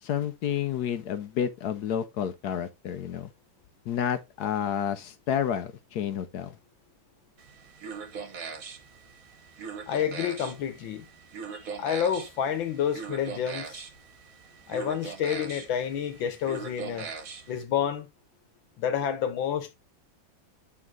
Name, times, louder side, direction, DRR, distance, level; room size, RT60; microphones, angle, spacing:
voice 1, 0.0-3.3 3.9-6.6, left 9 dB, 65° left, 1.1 m, -30 dB
sound 1, 7.4-17.6, right 6 dB, 50° right, 1.4 m, -41 dB
voice 2, 9.9-11.1 11.5-13.8 14.7-17.1 17.5-18.1 18.8-19.7, left 8 dB, 85° left, 1.7 m, -29 dB
8.6 x 3.6 x 3.6 m
omnidirectional pair, 2.0 m